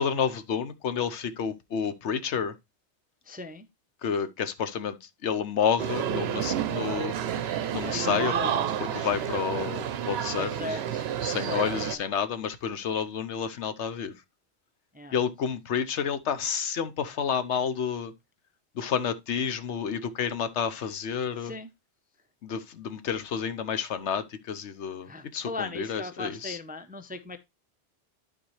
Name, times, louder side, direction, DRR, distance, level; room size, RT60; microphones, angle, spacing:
voice 1, 0.0-2.5 4.0-7.1 7.7-8.3 8.9-10.8 11.2-14.1 15.1-18.1 18.7-21.5 22.4-26.6, left 7 dB, 80° left, 1.1 m, -30 dB
voice 2, 3.2-3.6 7.9-8.7 9.1-9.3 10.4-12.0 14.9-15.1 21.4-21.7 25.0-27.4, left 2 dB, 15° right, 0.4 m, -39 dB
sound 1, 5.8-12.0, right 9 dB, 70° right, 0.8 m, -30 dB
11.5 x 4.4 x 3.1 m
omnidirectional pair, 1.2 m